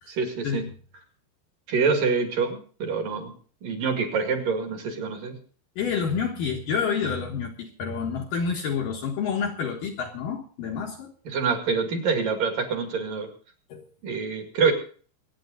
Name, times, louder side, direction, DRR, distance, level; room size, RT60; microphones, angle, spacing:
voice 1, 0.1-0.6 1.7-3.3 3.6-5.4 11.2-13.3 14.0-14.7, right 5 dB, 55° right, 4 dB, 3.4 m, -26 dB
voice 2, 5.8-11.1 13.7-13.9, left 6 dB, 65° left, 1 dB, 2.6 m, -28 dB
24.5 x 9.4 x 3.8 m, 0.42 s
omnidirectional pair, 5.2 m